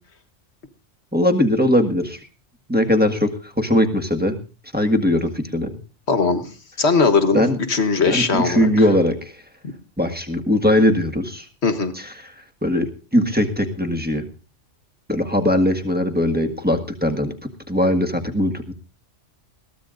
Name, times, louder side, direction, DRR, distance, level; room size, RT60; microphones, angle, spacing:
voice 1, 1.1-2.2 2.7-4.4 4.7-5.8 7.3-7.6 8.0-9.3 10.0-11.5 11.9-12.1 12.6-14.2 15.1-17.3 17.7-18.7, left 1 dB, 10° right, 4 dB, 1.6 m, -20 dB
voice 2, 6.1-6.5 6.8-7.4 7.7-8.7 9.6-9.7 11.6-11.9, left 4 dB, 65° left, 8 dB, 1.7 m, -19 dB
21.0 x 15.5 x 2.6 m, 0.34 s
omnidirectional pair, 1.2 m